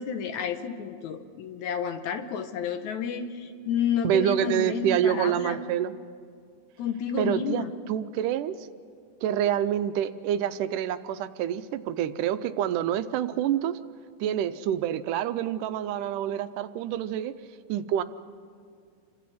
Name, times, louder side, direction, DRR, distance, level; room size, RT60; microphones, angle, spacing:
voice 1, 0.0-5.6 6.8-7.7, left 7 dB, 70° left, 8 dB, 2.3 m, -30 dB
voice 2, 4.0-5.9 7.2-8.5 9.2-13.7 14.2-17.3 17.7-18.0, right 10 dB, 80° right, 11 dB, 2.2 m, -27 dB
29.5 x 25.0 x 4.2 m, 2.1 s
omnidirectional pair, 3.8 m